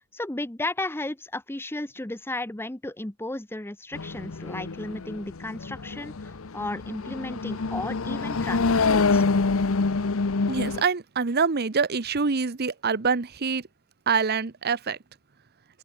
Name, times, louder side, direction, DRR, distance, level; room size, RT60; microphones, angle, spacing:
voice 1, 0.1-9.2, left 2 dB, 10° left, 0.9 m, -34 dB
sound 1, 3.9-10.8, left 4 dB, 70° left, 0.8 m, -26 dB
voice 2, 10.5-13.6 14.1-15.0, right 5 dB, 50° right, 0.8 m, -25 dB
open air
head